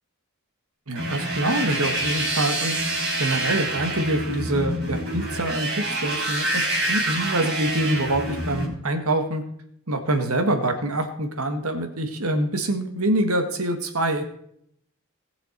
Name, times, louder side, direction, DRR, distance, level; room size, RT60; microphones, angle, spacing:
voice 1, 0.9-2.8 3.2-9.4 9.9-14.2, right 1 dB, 85° right, 7 dB, 1.8 m, -25 dB
sound 1, 1.0-8.7, right 1 dB, 55° right, 3.9 m, -27 dB
19.0 x 6.8 x 4.6 m, 0.70 s
head